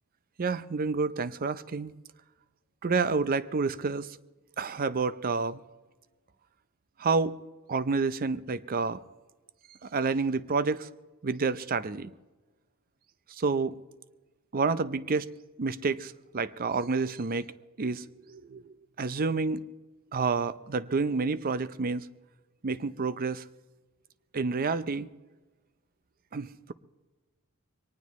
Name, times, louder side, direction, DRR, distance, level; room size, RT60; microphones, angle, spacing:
voice 1, 0.4-1.9 2.8-4.1 4.6-5.6 7.0-7.4 7.7-9.0 9.9-10.9 11.2-12.1 13.4-13.8 14.5-15.3 15.6-17.4 17.8-18.6 19.0-19.6 20.1-22.0 22.6-23.4 24.3-25.1 26.3-26.7, right 4 dB, 40° right, 0.5 m, -29 dB
22.5 x 19.0 x 3.1 m
head